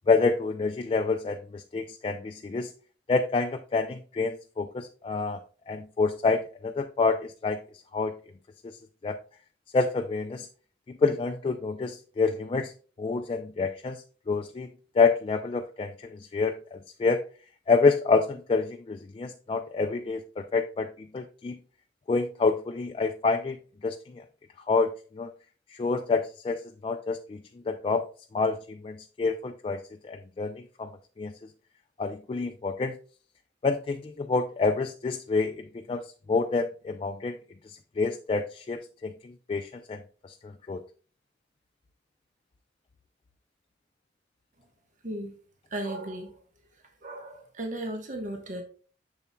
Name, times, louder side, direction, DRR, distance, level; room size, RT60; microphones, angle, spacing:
voice 1, 0.1-2.7 3.1-5.4 5.7-7.6 7.9-8.1 8.6-8.8 9.0-9.2 9.7-10.5 10.9-12.7 13.0-14.7 15.0-17.2 17.7-21.6 22.1-23.6 23.8-24.2 24.7-25.3 25.7-28.1 28.3-30.9 31.2-31.3 32.0-33.0 33.6-37.4 37.7-40.8, left 4 dB, 30° left, 5 dB, 0.3 m, -28 dB
voice 2, 45.0-45.4 45.7-46.4 47.0-48.6, right 1 dB, 45° right, 4 dB, 1.1 m, -35 dB
6.9 x 6.9 x 2.2 m, 0.38 s
head